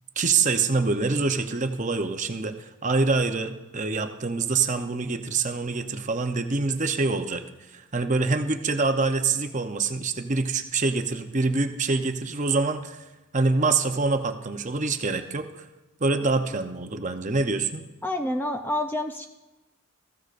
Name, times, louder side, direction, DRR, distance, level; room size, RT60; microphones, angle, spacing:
voice 1, 0.2-13.0 13.3-15.7 16.0-17.8, right 3 dB, 35° right, 7 dB, 0.7 m, -25 dB
voice 2, 18.0-19.3, left 1 dB, 10° left, 5 dB, 0.5 m, -28 dB
20.0 x 14.5 x 2.6 m, 1.0 s
head